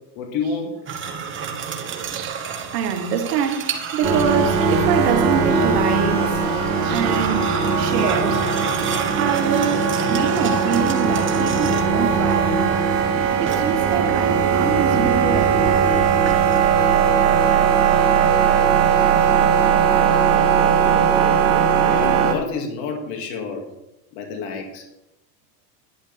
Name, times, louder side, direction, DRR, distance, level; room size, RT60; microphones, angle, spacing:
voice 1, 0.2-0.8 21.5-21.6 21.9-23.6 24.1-24.8, left 5 dB, 65° left, 2.3 m, -28 dB
sound 1, 0.9-5.1 6.3-12.1 13.5-14.0 16.3-16.6, right 6 dB, 25° right, 1.2 m, -31 dB
voice 2, 2.1-2.5 2.7-6.4 6.8-7.5 7.8-8.5 9.2-12.9 13.4-16.0, right 8 dB, 70° right, 1.8 m, -25 dB
sound 2, 4.0-22.3, right 6 dB, 45° right, 2.9 m, -19 dB
11.5 x 10.5 x 3.5 m
supercardioid pair, 130°, 48 cm